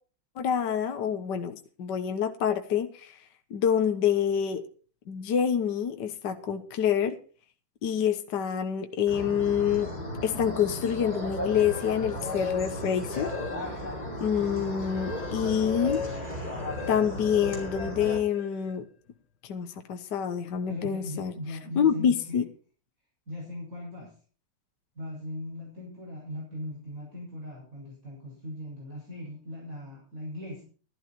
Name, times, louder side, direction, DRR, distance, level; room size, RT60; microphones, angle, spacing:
voice 1, 0.4-3.2 3.5-4.6 5.1-7.1 7.8-9.9 10.2-13.3 14.2-16.0 16.9-18.9 19.4-21.3 21.8-22.4, left 8 dB, 60° left, 7 dB, 1.7 m, -27 dB
sound 1, 9.1-18.2, left 1 dB, 20° left, 5.1 m, -35 dB
sound 2, 11.4-14.0 14.4-18.8, left 6 dB, 40° left, 1.6 m, -39 dB
voice 2, 20.7-22.4 23.3-24.1 25.0-30.6, left 1 dB, 40° right, -4 dB, 6.9 m, -39 dB
14.5 x 12.5 x 4.4 m, 0.40 s
omnidirectional pair, 2.3 m